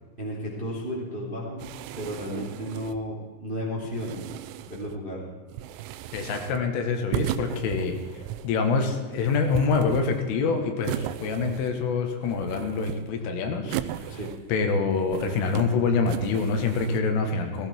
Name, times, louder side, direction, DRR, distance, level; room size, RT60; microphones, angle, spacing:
voice 1, 0.2-1.7 2.0-4.2 4.6-5.2 14.1-14.3, equal, 15° right, -3 dB, 1.8 m, -33 dB
sound 1, 1.6-3.1 3.8-5.0 5.5-6.7 7.1-8.6 9.1-10.4 10.8-11.9 12.2-13.2 13.7-14.6 15.0-15.7 16.1-17.0, right 13 dB, 90° right, 3.2 m, -36 dB
voice 2, 6.1-14.2 14.5-17.7, left 4 dB, 85° left, 4 dB, 4.2 m, -26 dB
16.0 x 15.5 x 4.6 m, 1.4 s
omnidirectional pair, 5.6 m